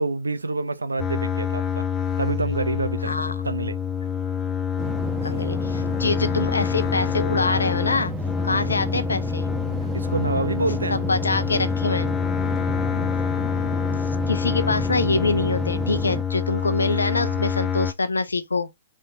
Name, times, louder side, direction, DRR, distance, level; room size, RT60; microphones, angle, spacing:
voice 1, 0.0-1.9 2.2-3.1 3.4-3.8 8.5-8.7 9.9-11.0 16.7-17.7, right 3 dB, 90° right, 0.6 m, -27 dB
sound 1, 1.0-17.9, left 8 dB, 20° left, 0.5 m, -26 dB
sound 2, 4.8-16.2, right 5 dB, 15° right, 1.0 m, -33 dB
voice 2, 5.2-8.1 8.4-9.5 11.1-12.1 14.3-18.7, left 3 dB, 85° left, 0.8 m, -25 dB
4.5 x 3.6 x 2.6 m
figure-of-eight pair, 120°, 0 cm